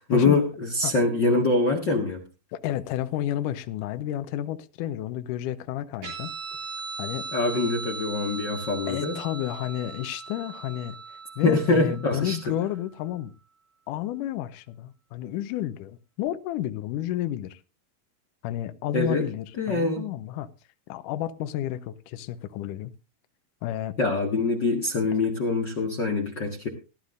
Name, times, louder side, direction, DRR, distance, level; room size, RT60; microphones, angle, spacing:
voice 1, 0.0-2.2 7.3-9.1 11.4-12.4 18.9-19.2 19.6-20.0 24.0-26.7, left 3 dB, 50° left, 1.3 m, -24 dB
voice 2, 2.5-6.3 7.0-7.3 8.9-11.0 11.4-13.3 13.9-17.6 18.4-20.5 20.9-22.9 23.6-23.9, left 13 dB, 75° left, 2.1 m, -31 dB
Guitar, 6.0-12.9, right 4 dB, 65° right, 5.2 m, -39 dB
19.5 x 11.5 x 2.6 m
omnidirectional pair, 4.3 m